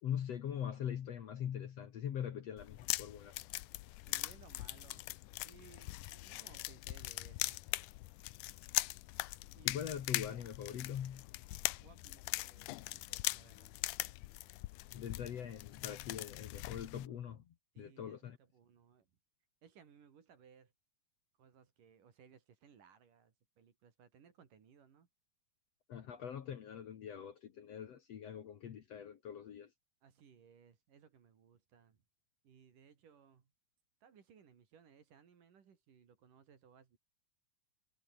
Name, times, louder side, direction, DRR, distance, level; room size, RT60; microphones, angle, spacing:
voice 1, 0.0-3.3 9.6-11.2 14.9-18.4 25.9-29.7, left 9 dB, 55° left, 2.1 m, -42 dB
sound 1, 2.6-17.1, left 19 dB, 80° left, 1.9 m, -41 dB
voice 2, 4.1-5.1 5.4-7.6 9.5-10.1 11.8-13.7 17.7-19.1 19.6-20.7 21.4-25.1 30.0-32.0 32.4-33.5 34.0-37.0, right 7 dB, 65° right, 4.4 m, -63 dB
omnidirectional pair, 4.2 m